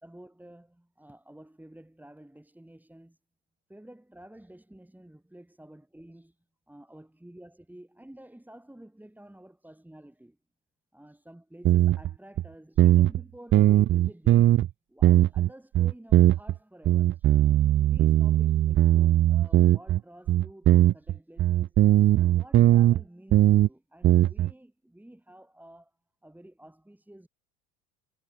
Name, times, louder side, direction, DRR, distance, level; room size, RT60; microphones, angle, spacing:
voice 1, 0.0-3.2 3.7-6.4 6.7-10.4 10.9-14.6 14.9-17.3 17.8-26.0 26.2-27.3, right 1 dB, 5° right, 5.1 m, -51 dB
sound 1, 11.6-12.1 12.4-12.5 12.8-13.2 13.5-14.7 15.0-15.5 15.7-16.6 16.9-20.0 20.3-23.0 23.3-23.7 24.0-24.5, right 13 dB, 35° right, 0.4 m, -20 dB
supercardioid pair, 95°, 37 cm